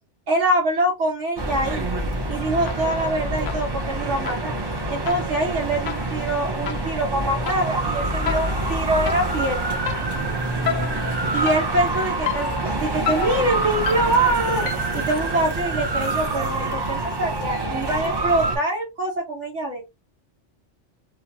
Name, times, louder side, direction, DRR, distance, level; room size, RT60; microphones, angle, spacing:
voice 1, 0.3-1.9 2.3-4.5 4.9-9.7 11.3-14.6 14.9-19.8, right 1 dB, 90° right, -2 dB, 1.3 m, -24 dB
sound 1, 1.4-18.6, right 2 dB, 30° right, 0.5 m, -26 dB
sound 2, 2.7-3.1 3.5-15.1, left 10 dB, 85° left, 0.9 m, -33 dB
3.0 x 2.2 x 2.5 m, 0.22 s
omnidirectional pair, 1.2 m